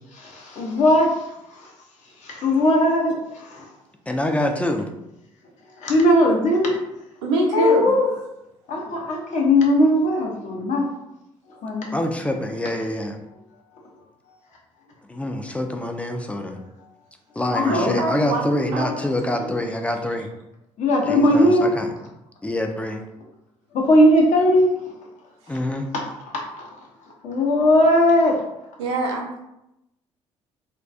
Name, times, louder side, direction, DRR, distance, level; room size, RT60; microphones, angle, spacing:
voice 1, 0.1-1.1 2.2-3.7 5.8-6.7 7.5-8.1 8.7-10.9 11.6-11.9 17.5-18.0 20.8-21.7 23.7-24.7 25.9-26.1 26.3-26.7 27.2-28.4, left 1 dB, 50° left, -1 dB, 0.7 m, -18 dB
voice 2, 4.1-4.9 11.9-13.2 15.1-16.6 17.4-20.3 21.0-21.9 22.4-23.0 25.5-25.9, left 1 dB, 10° left, 4 dB, 0.3 m, -26 dB
voice 3, 7.2-7.9 17.7-18.9 19.3-19.4 28.8-29.4, right 2 dB, 70° right, -1 dB, 0.5 m, -25 dB
2.3 x 2.2 x 2.6 m, 0.87 s
figure-of-eight pair, 45°, 16 cm